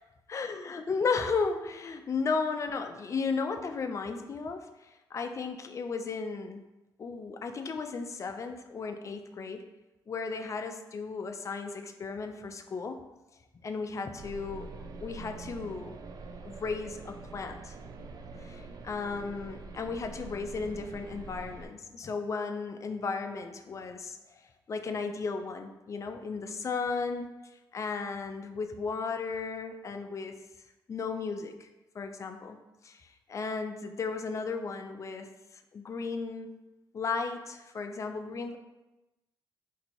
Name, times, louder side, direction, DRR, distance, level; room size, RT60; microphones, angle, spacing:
voice 1, 0.3-6.6 7.0-9.7 10.1-13.0 13.6-14.7 15.0-16.0 16.4-17.7 18.4-24.4 24.7-27.3 27.7-30.3 30.9-31.7 31.9-36.5 36.9-38.6, left 4 dB, 35° left, 6 dB, 0.4 m, -35 dB
sound 1, 14.2-21.7, right 3 dB, 45° right, 0.4 m, -45 dB
2.8 x 2.6 x 4.2 m, 1.0 s
cardioid pair, 75°, 9 cm